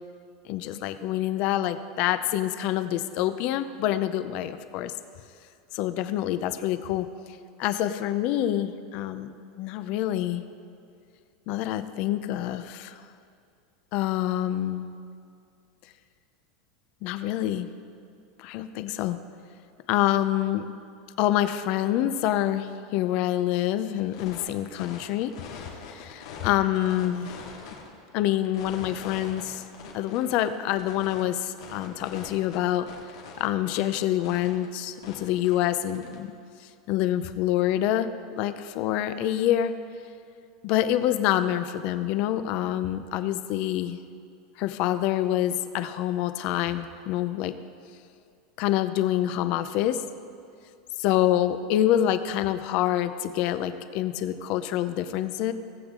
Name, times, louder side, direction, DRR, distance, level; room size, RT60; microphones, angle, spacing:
voice 1, 0.5-4.9 5.7-7.1 7.6-10.4 11.5-12.9 13.9-14.9 17.0-17.7 18.4-19.2 19.9-20.7 21.2-27.4 28.1-29.6 29.9-32.9 33.4-36.3 36.9-38.1 38.4-39.7 40.6-44.0 44.6-47.5 48.6-50.0 51.0-55.5, left 12 dB, 40° left, 11 dB, 0.5 m, -26 dB
sound 1, 24.1-24.4 24.7-26.5 26.7-27.9 28.3-31.2 31.6-34.0 34.2-34.6 35.0-36.1, left 6 dB, 80° left, 2.2 m, -43 dB
17.5 x 8.0 x 3.7 m, 2.4 s
supercardioid pair, 165°, 3 cm